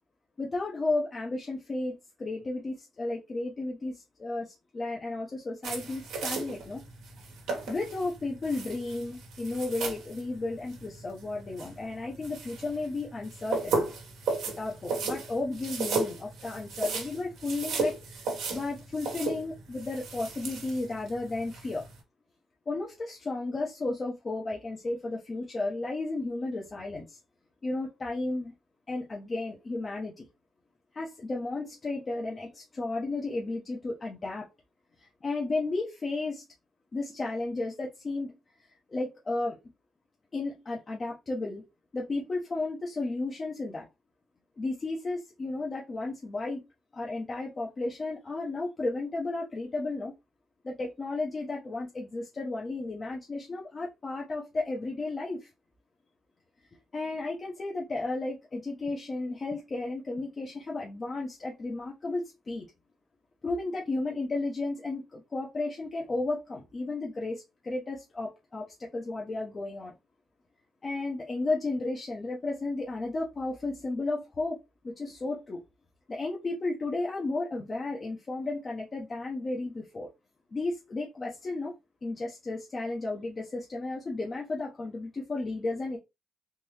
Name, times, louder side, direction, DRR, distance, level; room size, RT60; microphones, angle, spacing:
voice 1, 0.4-6.8 7.7-13.8 14.5-21.8 22.7-27.2 27.6-28.5 28.9-30.3 30.9-34.5 35.2-36.4 36.9-38.4 38.9-39.6 40.3-41.6 41.9-43.9 44.6-46.6 46.9-50.1 50.6-55.5 56.9-62.7 63.4-69.9 70.8-74.6 74.8-75.6 76.1-80.1 80.5-81.7 82.0-86.0, left 2 dB, 35° left, 0.9 m, -33 dB
sound 1, 5.6-22.0, right 4 dB, 80° right, 1.3 m, -35 dB
3.7 x 2.6 x 3.1 m
cardioid pair, 90°, 0 cm